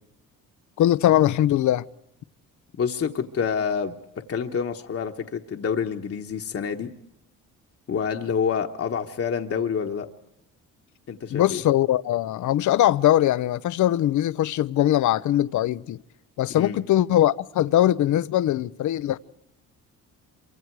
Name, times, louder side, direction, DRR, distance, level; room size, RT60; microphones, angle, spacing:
voice 1, 0.8-1.9 11.3-16.0 16.4-19.2, left 13 dB, 60° left, 0.7 m, -21 dB
voice 2, 2.8-3.9 4.3-6.9 7.9-10.1 11.1-11.6 16.5-16.8, left 6 dB, 45° left, 1.3 m, -27 dB
27.0 x 24.5 x 4.7 m
cardioid pair, 95°, 33 cm